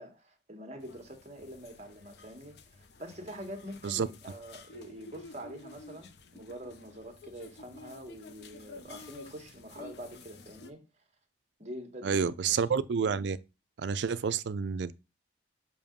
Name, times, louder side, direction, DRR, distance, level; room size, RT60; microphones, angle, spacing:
voice 1, 0.0-10.8 11.6-12.6, equal, 35° right, 1.3 m, -45 dB
sound 1, 0.8-10.7, left 3 dB, 60° left, 0.6 m, -51 dB
voice 2, 12.0-13.4 13.8-14.9, right 6 dB, 70° right, 0.4 m, -29 dB
6.9 x 2.8 x 5.1 m
head